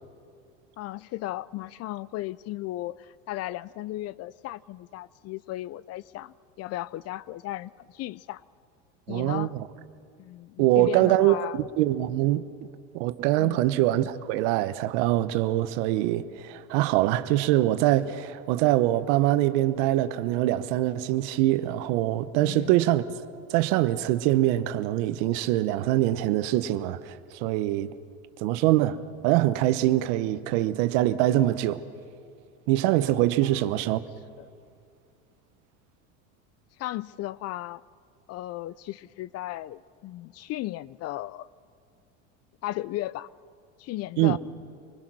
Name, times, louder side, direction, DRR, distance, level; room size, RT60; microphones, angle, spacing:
voice 1, 0.8-8.4 9.1-9.5 10.2-11.6 13.4-13.7 22.4-22.8 33.4-33.7 34.4-34.5 36.8-37.8 38.3-41.5 42.6-43.3 43.8-44.4, left 15 dB, 45° left, 0.5 m, -35 dB
voice 2, 9.1-9.6 10.6-12.4 12.9-23.2 23.5-27.9 28.4-29.0 29.2-31.8 32.7-34.0 44.2-44.4, right 15 dB, 70° right, 1.0 m, -24 dB
24.5 x 20.5 x 6.2 m
supercardioid pair, 100°, 36 cm